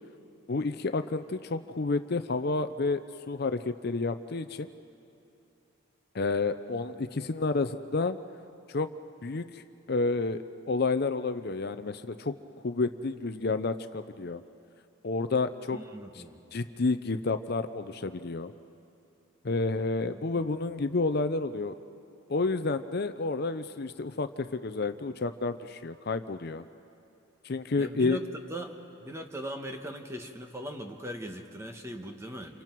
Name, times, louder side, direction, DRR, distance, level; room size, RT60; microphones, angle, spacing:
voice 1, 0.5-3.0 3.3-4.7 6.1-8.2 8.7-8.9 9.2-9.6 9.9-12.3 12.6-14.4 15.0-15.8 16.5-18.5 19.4-21.7 22.3-26.6 27.4-28.2, left 3 dB, 45° left, 10 dB, 0.5 m, -30 dB
voice 2, 15.7-16.4 20.1-20.5 27.8-28.2 28.5-32.6, equal, 15° right, 4 dB, 1.2 m, -40 dB
29.5 x 28.0 x 4.6 m, 2.7 s
head